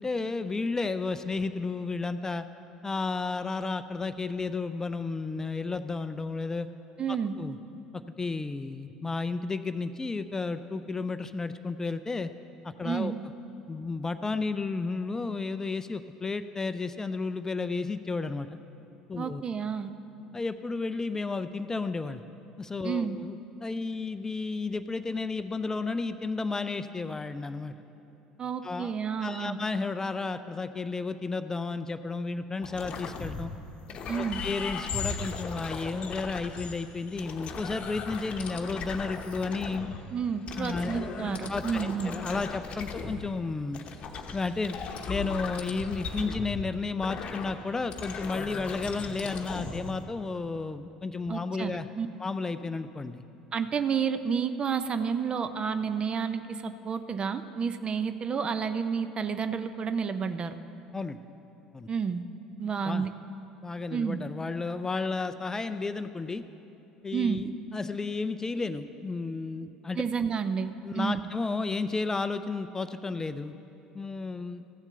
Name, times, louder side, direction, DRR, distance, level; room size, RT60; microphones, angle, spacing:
voice 1, 0.0-2.5 2.8-6.7 7.1-7.6 7.9-12.3 12.6-13.1 13.7-18.5 19.1-19.4 20.3-22.2 22.6-27.7 28.6-28.9 29.2-33.5 34.1-39.9 40.5-41.0 41.5-43.8 44.3-44.8 45.1-51.9 52.2-53.2 60.9-61.2 61.7-61.9 62.8-63.1 63.6-66.4 67.0-70.0 70.8-73.5 73.9-74.6, left 3 dB, 20° left, 11 dB, 0.4 m, -32 dB
voice 2, 7.0-7.3 12.8-13.2 19.2-19.9 22.8-23.2 28.4-29.6 34.1-34.4 40.1-42.1 51.3-52.1 53.5-60.5 61.9-62.2 62.6-63.1 63.9-64.2 67.1-67.4 70.0-71.2, right 6 dB, 30° right, 11 dB, 0.6 m, -30 dB
sound 1, 32.6-33.6 33.9-40.0 40.5-43.3 43.7-49.9, left 4 dB, 40° left, 0.9 m, -37 dB
14.5 x 7.3 x 6.5 m, 2.9 s
figure-of-eight pair, 65°, 3 cm